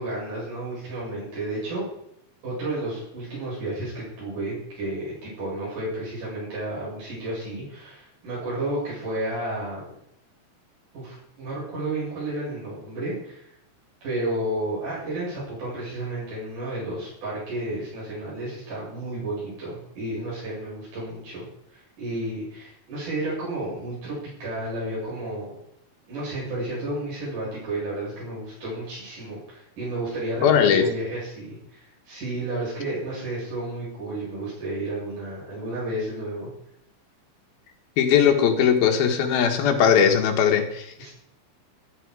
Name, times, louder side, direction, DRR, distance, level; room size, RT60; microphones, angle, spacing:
voice 1, 0.0-1.8 2.4-9.8 10.9-13.5 14.0-25.6 26.1-36.5 41.0-41.1, right 1 dB, 50° right, -8 dB, 9.3 m, -32 dB
voice 2, 30.4-30.9 38.0-41.1, left 8 dB, 70° left, 5 dB, 3.4 m, -19 dB
14.0 x 13.5 x 5.0 m, 0.76 s
omnidirectional pair, 4.5 m